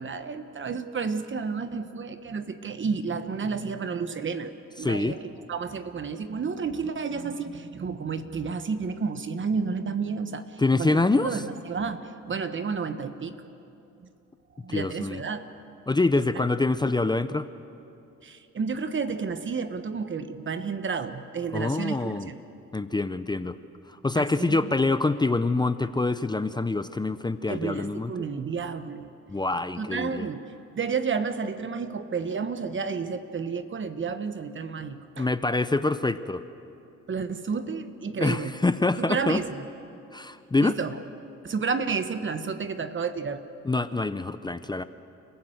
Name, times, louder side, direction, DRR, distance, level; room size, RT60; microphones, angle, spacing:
voice 1, 0.0-4.5 4.8-5.2 5.5-13.4 14.6-15.4 16.1-16.3 18.2-22.4 24.1-24.6 27.5-29.1 29.8-35.3 37.1-38.5 39.0-39.6 40.6-41.0 41.4-43.5, right 5 dB, 40° right, 10 dB, 1.3 m, -31 dB
voice 2, 4.8-5.2 10.6-11.4 14.7-15.2 15.9-17.5 21.5-22.3 22.7-23.6 24.0-28.1 29.3-30.3 35.2-36.4 38.2-39.4 40.1-40.8 43.6-44.8, left 3 dB, 15° left, 12 dB, 0.6 m, -25 dB
29.5 x 15.5 x 7.9 m, 2.8 s
cardioid pair, 90°, 30 cm